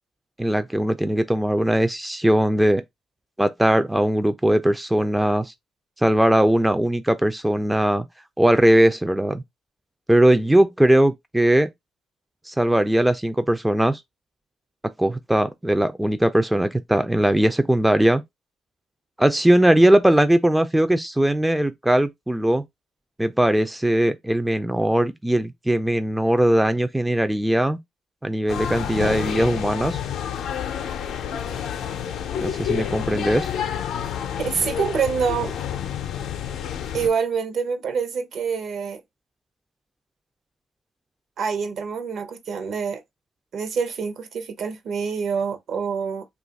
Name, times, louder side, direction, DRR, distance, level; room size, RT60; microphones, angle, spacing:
voice 1, 0.4-2.8 3.4-5.5 6.0-8.1 8.4-9.4 10.1-11.7 12.5-14.0 15.0-18.2 19.2-22.6 23.2-27.8 28.2-30.0 32.4-33.5, right 1 dB, 5° right, 0.3 m, -19 dB
sound 1, 28.5-37.1, left 9 dB, 75° left, 0.5 m, -29 dB
voice 2, 34.4-35.6 36.9-39.0 41.4-43.0 43.5-46.3, right 6 dB, 65° right, 0.7 m, -26 dB
2.8 x 2.3 x 3.9 m
cardioid pair, 105°, 0 cm